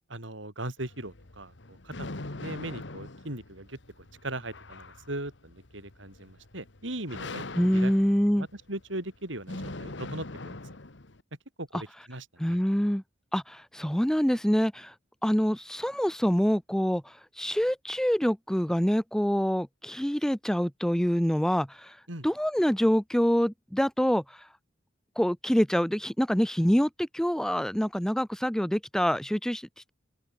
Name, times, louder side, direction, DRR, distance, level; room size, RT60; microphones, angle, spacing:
voice 1, 0.1-7.4 7.7-7.9 8.3-10.6 11.6-12.6 22.1-22.3, right 1 dB, 75° right, 6.2 m, -39 dB
sound 1, 0.8-11.2, left 2 dB, 65° left, 1.6 m, -42 dB
voice 2, 7.6-8.5 12.4-13.0 13.3-14.9 15.2-22.0 22.2-24.5 25.2-29.9, equal, 5° left, 0.7 m, -26 dB
open air
head